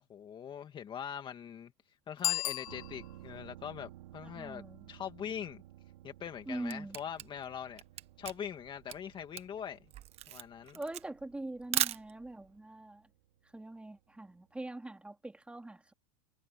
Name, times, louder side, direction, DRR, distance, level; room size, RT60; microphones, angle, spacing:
voice 1, 0.0-1.7 2.1-5.6 6.0-7.8 8.2-9.8 10.3-10.8, left 8 dB, 25° left, 2.0 m, -42 dB
Bicycle bell, 2.2-3.4, left 17 dB, 70° left, 0.4 m, -35 dB
sound 1, 2.7-14.2 14.5-14.6, right 14 dB, 75° right, 5.3 m, -56 dB
voice 2, 4.2-4.9 6.5-7.0 10.7-13.1 13.5-15.9, right 2 dB, 5° right, 4.1 m, -43 dB
Camera, 6.3-12.5, right 13 dB, 35° right, 1.4 m, -38 dB
hypercardioid pair, 125°, 19 cm